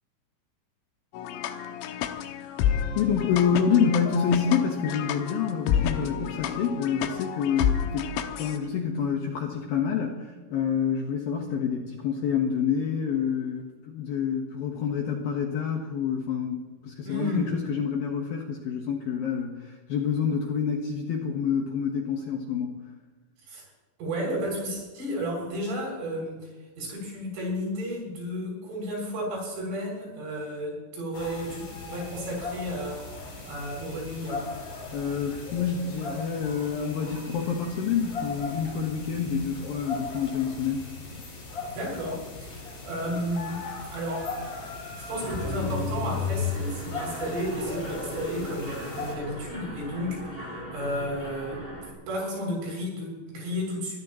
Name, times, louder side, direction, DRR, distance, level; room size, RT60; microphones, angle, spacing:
sound 1, 1.1-8.6, left 9 dB, 90° left, 3.7 m, -30 dB
voice 1, 3.0-22.8 34.9-40.9 41.2-41.3, left 7 dB, 70° left, 1 dB, 2.4 m, -27 dB
voice 2, 17.1-17.5 23.5-23.6 24.0-26.5 26.8-34.4 41.6-43.6 43.9-44.3 45.0-51.6 52.1-54.0, equal, 80° right, -2 dB, 9.5 m, -32 dB
sound 2, 31.1-49.2, left 3 dB, 45° left, 5.6 m, -39 dB
Mechanisms, 45.2-51.9, left 3 dB, 15° left, 3.3 m, -35 dB
24.5 x 16.0 x 3.1 m, 1.3 s
omnidirectional pair, 5.8 m